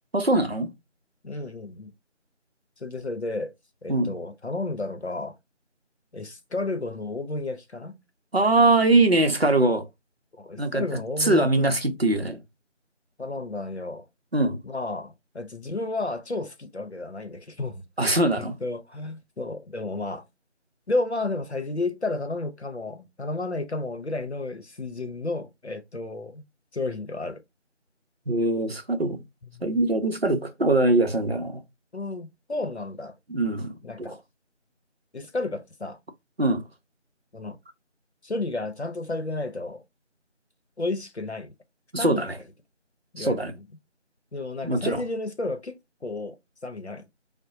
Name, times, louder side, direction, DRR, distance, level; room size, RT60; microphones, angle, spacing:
voice 1, 0.1-0.7 3.9-4.2 8.3-9.9 10.6-12.4 14.3-14.6 18.0-18.6 28.3-29.2 29.6-31.6 33.3-34.2 36.4-36.6 41.9-42.4 43.2-43.5 44.6-45.0, right 2 dB, 55° right, 0.7 m, -22 dB
voice 2, 1.2-1.9 2.8-3.5 3.8-5.4 6.1-8.0 10.3-11.7 13.2-14.1 14.6-17.8 18.6-20.2 20.9-26.4 26.7-27.4 29.5-29.8 31.9-33.2 33.8-34.2 35.1-36.0 37.3-37.6 38.2-39.8 40.8-41.5 42.0-42.4 43.1-43.7 44.3-46.4 46.6-47.0, left 2 dB, 65° left, 0.8 m, -32 dB
4.9 x 2.1 x 2.7 m
figure-of-eight pair, 180°, 36 cm